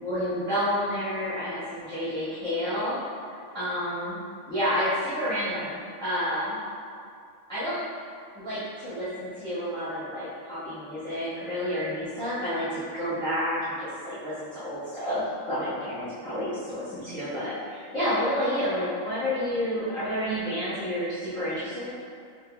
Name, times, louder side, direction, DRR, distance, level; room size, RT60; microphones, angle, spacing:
voice 1, 0.0-3.0 3.5-4.2 4.5-6.6 7.5-7.8 8.3-12.6 12.9-21.9, equal, 5° left, -15 dB, 1.1 m, -30 dB
5.8 x 2.8 x 2.2 m, 2.3 s
omnidirectional pair, 1.5 m